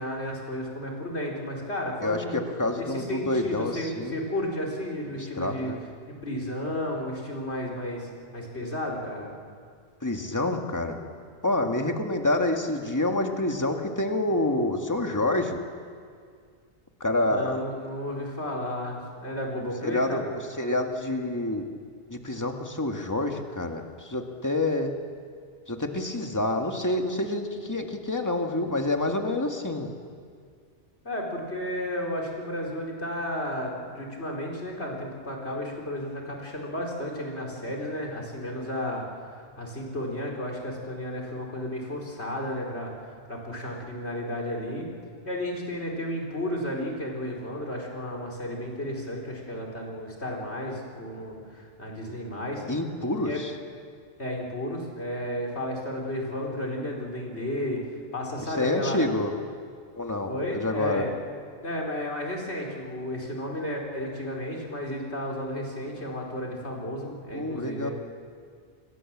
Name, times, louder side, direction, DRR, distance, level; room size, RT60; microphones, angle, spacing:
voice 1, 0.0-2.4 2.8-5.7 6.1-9.3 17.2-20.3 31.0-39.0 39.3-44.9 45.2-52.6 53.2-53.4 54.2-57.8 58.1-59.0 60.3-61.1 61.6-67.9, left 1 dB, 80° left, -1 dB, 4.5 m, -33 dB
voice 2, 2.0-4.1 5.2-5.8 10.0-11.0 11.4-15.6 17.0-17.6 19.6-20.2 20.6-21.7 22.1-24.9 25.7-29.9 52.7-53.5 58.6-59.3 60.0-61.1 67.3-67.9, left 2 dB, 15° left, 3 dB, 1.9 m, -27 dB
28.0 x 21.5 x 7.4 m, 2.1 s
omnidirectional pair, 1.1 m